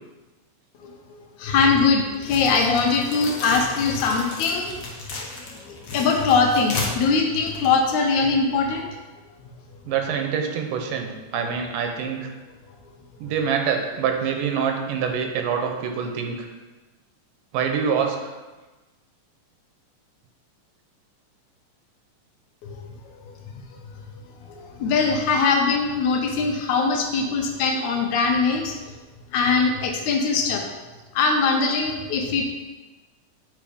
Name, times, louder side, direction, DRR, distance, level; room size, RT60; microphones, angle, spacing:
voice 1, 1.1-4.7 5.1-5.3 5.7-8.9 22.7-22.9 23.3-23.4 24.4-28.9 29.3-30.6 31.1-32.4, left 4 dB, 75° left, 2 dB, 2.0 m, -22 dB
sound 1, 2.2-8.3, left 3 dB, 90° left, 0.9 m, -34 dB
voice 2, 9.9-12.3 13.2-16.5 17.5-18.3, right 7 dB, 90° right, 4 dB, 2.4 m, -25 dB
7.6 x 4.0 x 4.9 m, 1.2 s
omnidirectional pair, 3.6 m